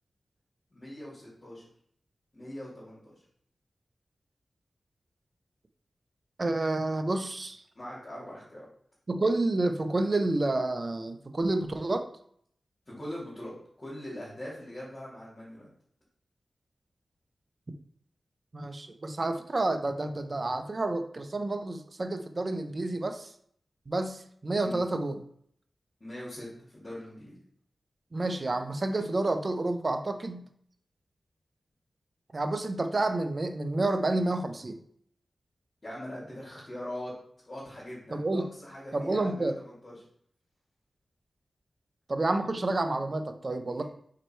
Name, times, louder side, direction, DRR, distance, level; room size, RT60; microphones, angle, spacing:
voice 1, 0.7-1.6 2.3-3.1 7.7-8.6 12.9-15.7 24.6-24.8 26.0-26.5 26.7-27.4 35.8-37.1 37.5-40.0 43.5-43.8, left 1 dB, 45° left, -10 dB, 2.7 m, -42 dB
voice 2, 6.4-7.6 9.1-12.1 18.5-23.3 23.9-25.2 28.1-30.4 32.3-34.8 38.1-38.5 38.9-39.5 42.1-43.8, right 2 dB, 45° right, 7 dB, 0.8 m, -29 dB
4.9 x 4.5 x 4.5 m, 0.64 s
cardioid pair, 50°, 0 cm